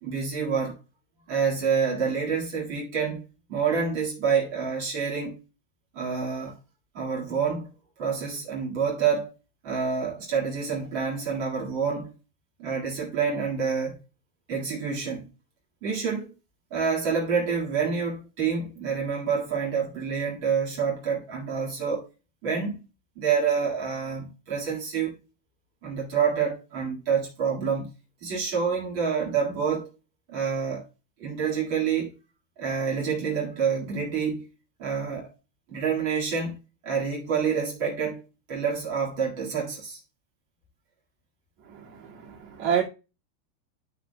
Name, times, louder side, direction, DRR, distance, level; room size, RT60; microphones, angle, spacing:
voice 1, 0.0-0.8 1.3-3.2 3.5-5.4 5.9-6.5 6.9-7.7 8.0-9.3 9.6-12.1 12.6-14.0 14.5-15.3 15.8-16.3 16.7-22.0 22.4-22.8 23.1-25.1 25.8-27.9 28.2-29.9 30.3-30.8 31.2-32.1 32.6-34.4 34.8-35.3 35.7-36.5 36.8-38.2 38.5-40.0, right 6 dB, 80° right, 1.1 m, -27 dB
voice 2, 41.7-42.8, right 8 dB, 50° right, 2.5 m, -28 dB
11.5 x 5.9 x 2.2 m
omnidirectional pair, 5.8 m